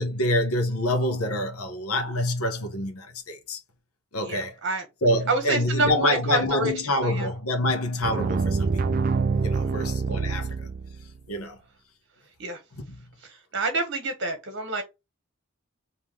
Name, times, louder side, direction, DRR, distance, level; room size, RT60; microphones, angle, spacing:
voice 1, 0.0-3.6 4.1-4.5 5.0-8.8 9.4-10.7 11.3-11.6 12.9-13.0, left 1 dB, 80° left, 1.1 m, -26 dB
voice 2, 4.2-4.8 5.3-6.7 7.0-7.3 9.6-9.9 12.4-12.6 13.5-14.8, right 3 dB, 55° right, 1.4 m, -28 dB
sound 1, 8.0-11.2, right 4 dB, 40° right, 0.3 m, -26 dB
3.7 x 3.0 x 4.5 m
head